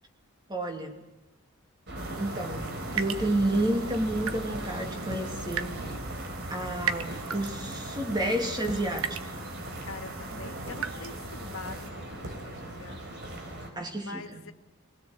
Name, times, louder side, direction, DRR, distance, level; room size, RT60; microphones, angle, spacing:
voice 1, 0.5-1.0 2.2-2.6 2.9-5.7 6.5-9.1 13.8-14.4, right 1 dB, 20° right, 4 dB, 2.7 m, -30 dB
sound 1, 1.9-13.7, right 1 dB, 50° right, 4.0 m, -38 dB
sound 2, 2.0-11.9, right 7 dB, 75° right, 1.3 m, -39 dB
voice 2, 9.8-13.3 13.6-14.5, left 3 dB, 70° left, 6 dB, 2.0 m, -44 dB
22.5 x 17.0 x 8.0 m, 1.1 s
head